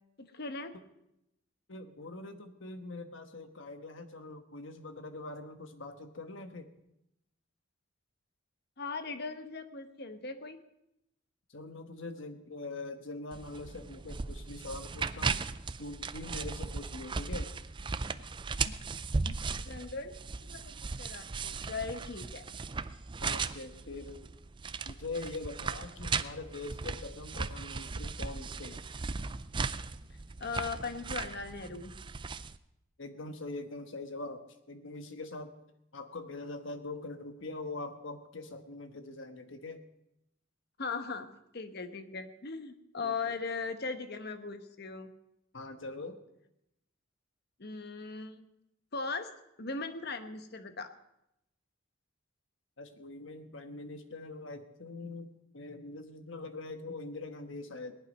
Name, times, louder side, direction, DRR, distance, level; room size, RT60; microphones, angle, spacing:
voice 1, 0.2-0.7 8.8-10.6 19.7-22.4 30.4-31.9 40.8-45.1 47.6-48.4 48.9-49.3 49.6-50.9, left 4 dB, 55° left, 9 dB, 1.1 m, -39 dB
voice 2, 1.7-6.7 11.5-15.4 15.8-17.5 18.6-19.4 23.2-24.3 24.8-28.8 33.0-35.5 35.9-39.8 43.0-43.3 45.5-46.2 52.8-58.0, left 2 dB, 70° left, 8 dB, 1.3 m, -43 dB
sound 1, 13.3-32.6, right 4 dB, 25° right, 0.4 m, -37 dB
18.5 x 11.0 x 5.4 m, 0.85 s
head